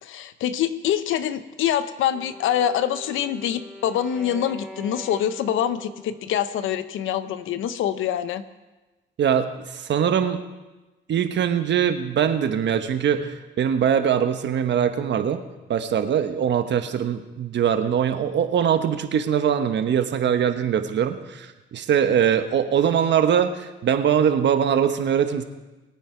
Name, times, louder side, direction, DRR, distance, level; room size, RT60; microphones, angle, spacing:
voice 1, 0.0-8.4, left 10 dB, 80° left, 12 dB, 0.9 m, -25 dB
Wind instrument woodwind instrument, 2.1-7.2, left 1 dB, ahead, 1.8 m, -43 dB
voice 2, 9.2-10.4 11.1-15.4 15.7-25.4, right 8 dB, 65° right, 8 dB, 1.3 m, -22 dB
23.0 x 9.1 x 4.6 m, 1.1 s
cardioid pair, 90°, 20 cm